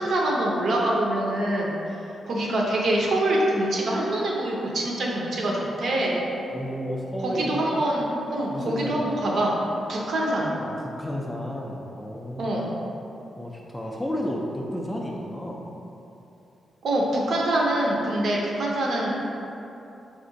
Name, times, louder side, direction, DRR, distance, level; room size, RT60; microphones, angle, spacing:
voice 1, 0.0-1.7 2.3-6.2 7.2-9.5 9.9-10.6 12.4-12.7 16.8-19.3, right 1 dB, 50° right, -2 dB, 0.6 m, -25 dB
voice 2, 6.5-7.7 8.5-9.2 10.6-12.6 13.4-15.7, equal, 5° left, -2 dB, 0.3 m, -32 dB
4.4 x 2.5 x 3.8 m, 2.9 s
wide cardioid pair, 175°, 0 cm